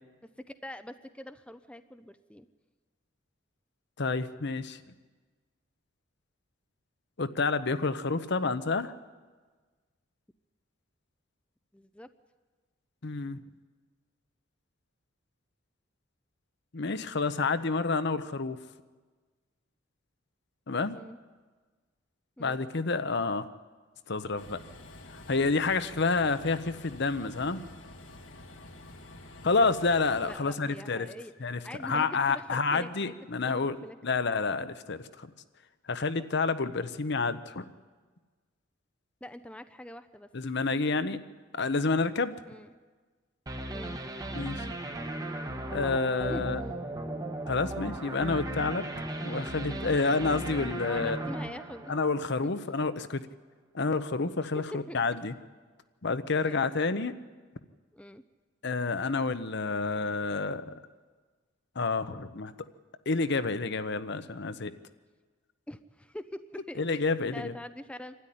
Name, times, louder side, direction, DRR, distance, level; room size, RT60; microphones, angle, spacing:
voice 1, 0.4-2.5 11.7-12.1 20.9-21.2 22.4-22.6 30.2-31.3 31.6-32.9 33.4-34.0 39.2-40.3 42.5-42.7 43.7-44.0 46.3-46.4 50.8-51.9 54.5-55.0 56.4-56.6 57.9-58.2 65.7-68.1, left 1 dB, 5° left, 10 dB, 0.5 m, -44 dB
voice 2, 4.0-4.8 7.2-8.9 13.0-13.4 16.7-18.6 20.7-21.0 22.4-23.5 24.1-24.6 25.1-27.6 29.4-31.1 31.4-33.8 34.0-35.3 35.9-37.7 40.3-41.2 41.5-42.4 44.3-44.7 45.7-46.6 47.5-48.8 49.2-51.2 51.9-53.2 53.7-55.3 56.0-57.1 58.6-60.7 61.8-62.5 63.1-64.7 66.8-67.5, left 4 dB, 60° left, 12 dB, 0.9 m, -29 dB
Train, 24.4-30.4, left 1 dB, 75° left, 1.8 m, -48 dB
sound 1, 43.5-52.5, right 1 dB, 20° right, 1.2 m, -36 dB
25.5 x 13.0 x 10.0 m, 1.4 s
head